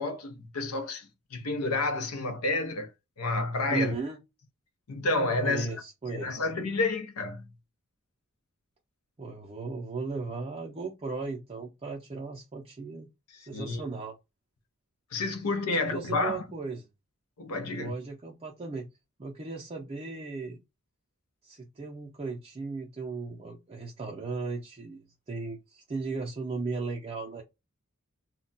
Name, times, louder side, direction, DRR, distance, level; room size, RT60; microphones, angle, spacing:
voice 1, 0.0-2.9 3.2-3.9 4.9-5.7 6.1-7.4 13.5-13.8 15.1-16.4 17.4-17.9, left 2 dB, 85° left, 0.7 m, -30 dB
voice 2, 3.7-4.2 5.4-6.4 9.2-13.1 13.5-14.2 15.8-16.9 17.7-18.9 19.2-20.6 21.4-27.4, right 3 dB, 30° right, 0.4 m, -36 dB
2.2 x 2.2 x 3.8 m
head